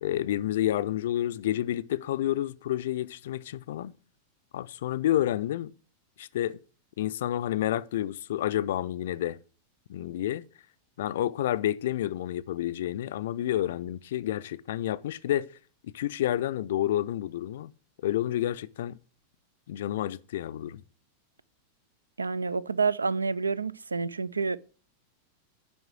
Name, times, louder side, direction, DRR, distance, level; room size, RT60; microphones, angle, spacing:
voice 1, 0.0-3.9 4.5-5.7 6.2-6.6 7.0-9.4 9.9-10.4 11.0-15.5 15.8-17.7 18.0-19.0 19.7-20.8, left 12 dB, 55° left, 0.4 m, -29 dB
voice 2, 22.2-24.6, right 4 dB, 75° right, 0.3 m, -28 dB
7.8 x 5.3 x 7.4 m
figure-of-eight pair, 90°, 0 cm